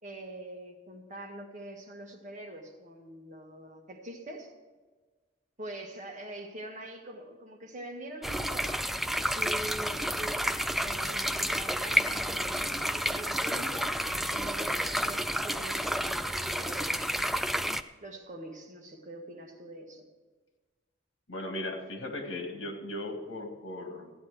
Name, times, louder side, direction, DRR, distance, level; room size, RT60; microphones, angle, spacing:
voice 1, 0.0-4.5 5.6-13.9 14.3-17.2 18.0-20.1, right 1 dB, 40° right, 1 dB, 1.8 m, -44 dB
sound 1, 8.2-17.8, equal, ahead, 0.3 m, -30 dB
voice 2, 21.3-24.1, left 1 dB, 75° left, 4 dB, 1.9 m, -37 dB
15.0 x 10.0 x 4.8 m, 1.3 s
head